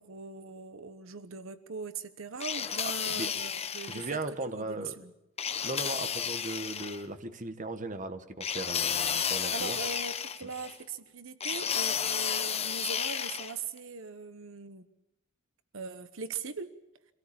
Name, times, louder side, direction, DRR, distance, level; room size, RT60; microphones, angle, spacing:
voice 1, 0.0-4.2 4.5-5.1 9.5-14.9 15.7-16.7, right 4 dB, 70° right, 11 dB, 1.1 m, -40 dB
sound 1, 2.4-4.1 5.4-7.0 8.4-10.7 11.4-13.5, left 7 dB, 30° left, 1.0 m, -32 dB
voice 2, 3.9-5.0 5.6-9.8, right 2 dB, 40° right, 9 dB, 1.4 m, -37 dB
25.0 x 18.0 x 8.6 m, 0.93 s
head